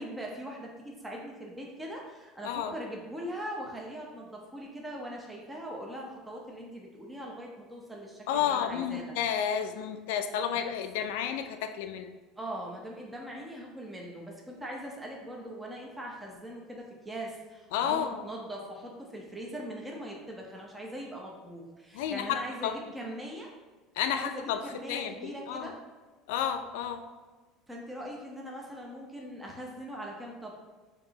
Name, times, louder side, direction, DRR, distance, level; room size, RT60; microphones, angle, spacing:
voice 1, 0.0-9.1 12.4-23.5 24.1-25.7 27.7-30.5, equal, 10° right, -1 dB, 0.7 m, -41 dB
voice 2, 8.3-12.1 17.7-18.2 21.9-22.7 24.0-25.7 26.3-27.0, left 9 dB, 90° left, 7 dB, 0.4 m, -31 dB
6.5 x 2.9 x 2.8 m, 1.3 s
cardioid pair, 145°, 0 cm